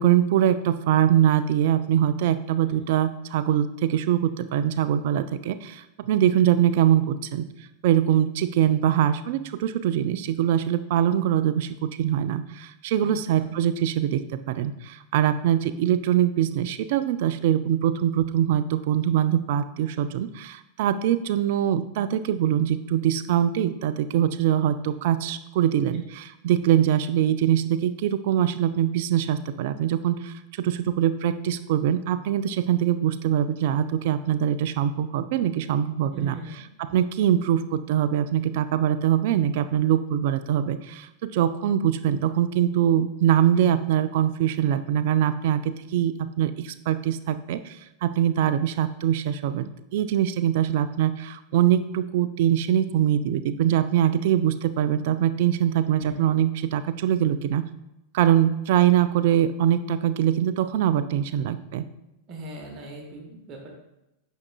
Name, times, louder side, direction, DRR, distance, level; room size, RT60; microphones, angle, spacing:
voice 1, 0.0-7.5 7.8-36.4 36.8-57.6 58.1-61.8, right 10 dB, 50° right, 12 dB, 0.4 m, -23 dB
voice 2, 13.0-13.5 36.1-36.6 56.0-56.2 62.3-63.7, right 2 dB, 35° right, 0 dB, 1.2 m, -40 dB
9.5 x 6.2 x 2.3 m, 0.90 s
figure-of-eight pair, 90°, 0 cm